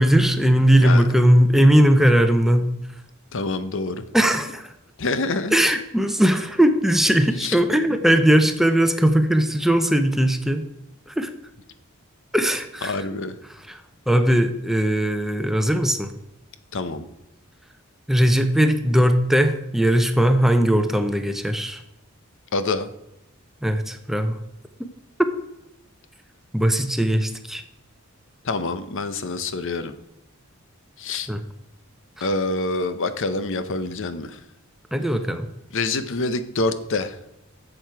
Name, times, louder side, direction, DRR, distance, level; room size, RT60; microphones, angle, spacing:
voice 1, 0.0-2.7 4.1-4.7 5.5-10.6 11.2-11.3 12.3-13.0 13.7-13.8 14.1-16.1 18.1-21.8 23.6-24.4 25.2-25.3 26.5-27.6 31.3-31.4 34.9-35.5, equal, ahead, 7 dB, 0.7 m, -19 dB
voice 2, 0.8-1.2 3.3-4.0 5.0-5.6 7.4-7.6 12.8-13.4 16.7-17.1 22.5-22.9 28.4-29.9 31.0-31.3 32.2-34.4 35.7-37.2, left 3 dB, 65° left, 11 dB, 0.8 m, -26 dB
11.5 x 7.7 x 4.7 m, 0.87 s
head